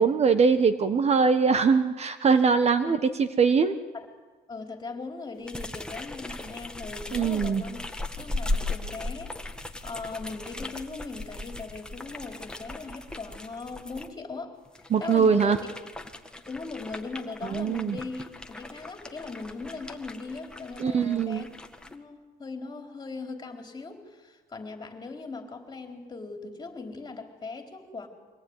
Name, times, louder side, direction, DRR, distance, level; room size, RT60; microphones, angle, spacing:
voice 1, 0.0-3.8 7.1-7.6 14.9-15.6 17.5-18.0 20.8-21.4, right 5 dB, 40° right, 10 dB, 1.3 m, -22 dB
voice 2, 4.5-7.8 8.2-9.3 9.8-14.5 15.0-15.7 16.5-21.5 21.8-28.1, left 3 dB, 25° left, 3 dB, 4.2 m, -39 dB
sound 1, 5.4-14.1 14.7-21.9, left 2 dB, 5° left, 1.8 m, -38 dB
25.0 x 19.0 x 9.8 m, 1.3 s
cardioid pair, 110°, 17 cm